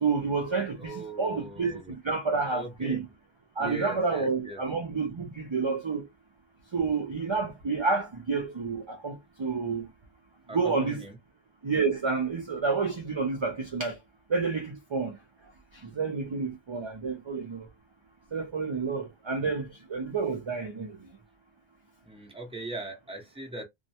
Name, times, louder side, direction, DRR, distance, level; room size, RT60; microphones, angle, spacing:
voice 1, 0.0-3.0 3.6-6.1 6.7-9.9 10.5-11.0 11.6-14.0 14.3-15.2 15.8-17.7 18.3-21.1, right 4 dB, 45° right, 0.4 m, -29 dB
voice 2, 0.8-1.9 2.5-3.0 3.6-4.6 10.5-11.2 22.0-23.6, right 2 dB, 5° right, 0.7 m, -40 dB
2.4 x 2.1 x 2.7 m
omnidirectional pair, 1.1 m